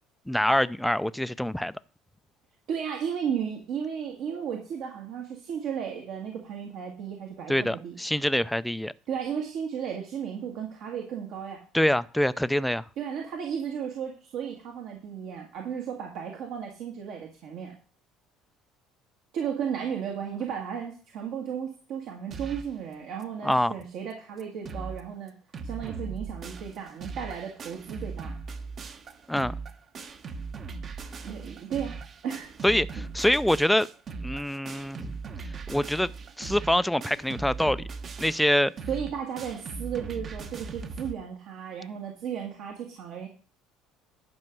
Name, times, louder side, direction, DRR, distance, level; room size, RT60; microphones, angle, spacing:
voice 1, 0.3-1.7 7.5-8.9 11.7-12.8 23.4-23.7 29.3-29.5 32.6-33.9 34.2-35.2 35.7-36.1 36.4-37.8 38.2-38.7, left 1 dB, 5° left, 0.5 m, -25 dB
voice 2, 2.7-8.0 9.1-11.6 13.0-17.8 19.3-25.3 25.6-28.4 31.2-32.0 32.2-32.5 38.9-43.3, right 8 dB, 65° right, 1.8 m, -34 dB
sound 1, 22.3-22.8 23.2-23.3 23.5-23.6 24.1-24.2 24.4-25.0 25.3-41.1, right 4 dB, 45° right, 1.1 m, -39 dB
11.0 x 5.2 x 5.9 m
supercardioid pair, 90°, 0 cm